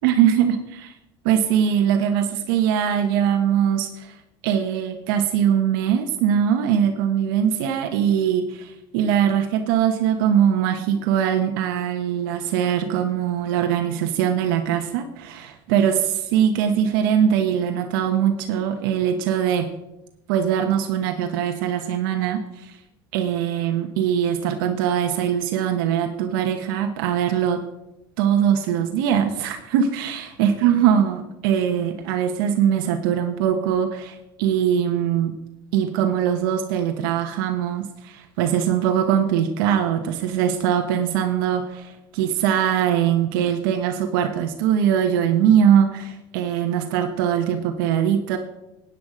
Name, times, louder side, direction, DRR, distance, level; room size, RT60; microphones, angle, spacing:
voice 1, 0.0-0.9 1.2-4.2 4.4-19.7 20.3-22.8 23.1-27.6 28.2-35.3 35.7-48.4, right 9 dB, 85° right, 5 dB, 1.2 m, -21 dB
14.0 x 9.3 x 5.0 m, 0.91 s
supercardioid pair, 125°, 11 cm